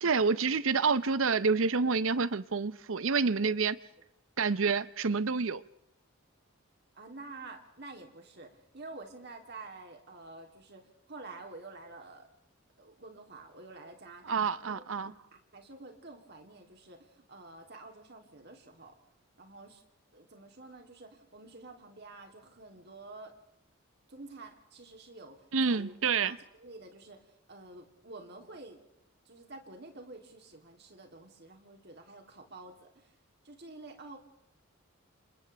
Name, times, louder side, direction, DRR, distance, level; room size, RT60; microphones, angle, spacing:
voice 1, 0.0-3.8 4.4-5.6 14.3-15.1 25.5-26.4, right 4 dB, 65° right, 0.7 m, -28 dB
voice 2, 6.9-12.3 12.8-18.9 19.4-19.8 20.1-23.4 24.1-25.9 26.2-27.2 27.5-28.8 29.2-33.1 33.4-34.2, right 3 dB, 50° right, 3.1 m, -49 dB
30.0 x 27.5 x 3.5 m
head